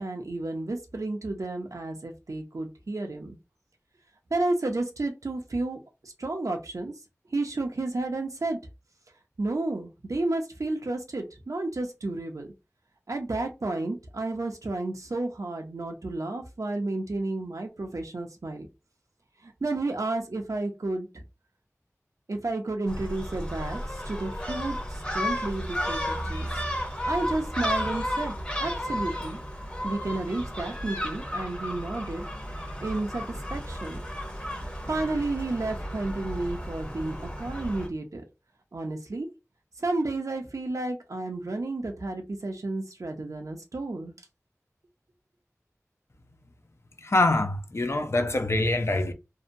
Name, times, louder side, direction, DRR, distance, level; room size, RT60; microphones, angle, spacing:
voice 1, 0.0-3.4 4.3-6.9 7.3-8.6 9.4-12.5 13.1-18.7 19.4-21.2 22.3-26.5 27.1-28.3 28.6-29.4 29.8-32.2 32.8-34.0 34.6-38.2 38.7-39.3 39.8-44.1, right 2 dB, 75° right, 0.6 m, -31 dB
Gull seagull, 22.9-37.9, equal, 20° left, 0.8 m, -33 dB
voice 2, 47.0-49.1, left 2 dB, 50° left, 0.4 m, -24 dB
2.7 x 2.1 x 2.5 m
wide cardioid pair, 55°, 6 cm